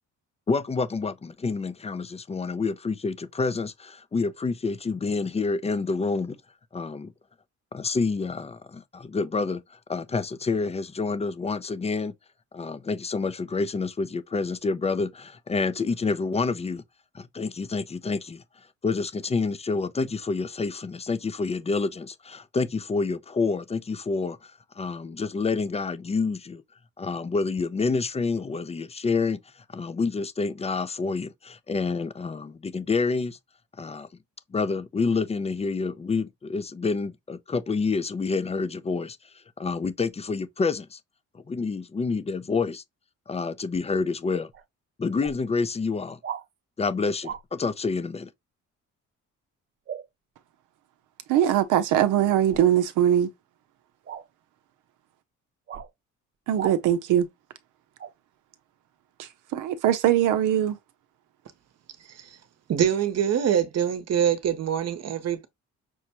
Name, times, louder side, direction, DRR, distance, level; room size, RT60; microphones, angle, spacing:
voice 1, 0.5-6.4 6.7-7.1 7.7-9.6 9.9-12.1 12.5-16.8 17.1-18.4 18.8-24.5 24.8-26.6 27.0-29.4 29.7-33.4 33.8-34.1 34.5-39.2 39.6-41.0 41.5-42.8 43.3-44.5 45.0-46.2 46.8-48.3, left 4 dB, 20° left, 0.4 m, -28 dB
sound 1, 44.5-44.6 45.2-45.4 46.2-46.4 47.2-47.4 49.9-50.1 52.5-52.7 54.0-54.3 55.7-55.9 56.6-56.8 58.0-58.1, right 8 dB, 40° right, 0.5 m, -36 dB
voice 2, 51.3-53.3 56.5-57.3 59.2-60.8, right 11 dB, 90° right, 0.7 m, -22 dB
voice 3, 62.7-65.5, right 9 dB, 55° right, 0.8 m, -24 dB
6.0 x 2.2 x 2.8 m
cardioid pair, 90°, 30 cm